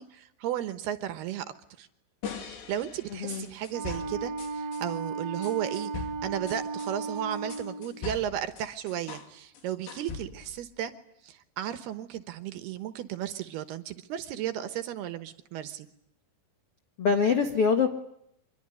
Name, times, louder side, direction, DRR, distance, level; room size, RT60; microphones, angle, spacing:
voice 1, 0.0-1.5 1.8-1.9 2.3-5.9 6.2-10.9 11.2-15.9, right 11 dB, 70° right, 9 dB, 2.8 m, -34 dB
sound 1, 2.2-4.9 5.4-9.3 9.6-10.6, left 6 dB, 70° left, 4.9 m, -41 dB
voice 2, 3.1-3.5 17.0-17.9, left 5 dB, 85° left, 5 dB, 1.2 m, -24 dB
Wind instrument woodwind instrument, 3.7-7.9, right 4 dB, 5° left, 3.8 m, -35 dB
25.5 x 22.0 x 9.8 m, 0.76 s
omnidirectional pair, 5.3 m